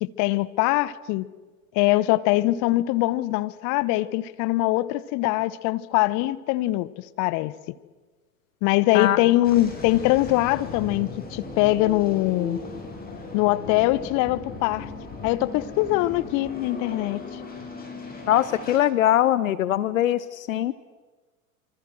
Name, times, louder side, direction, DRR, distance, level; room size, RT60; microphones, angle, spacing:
voice 1, 0.0-1.3 1.7-7.5 8.6-12.6 13.3-14.9 15.2-17.4, left 17 dB, 40° left, 1.1 m, -23 dB
sound 1, 9.4-18.8, left 3 dB, 20° left, 7.8 m, -37 dB
voice 2, 18.3-20.7, left 12 dB, 65° left, 1.0 m, -22 dB
27.0 x 25.0 x 6.4 m
figure-of-eight pair, 80°, 44 cm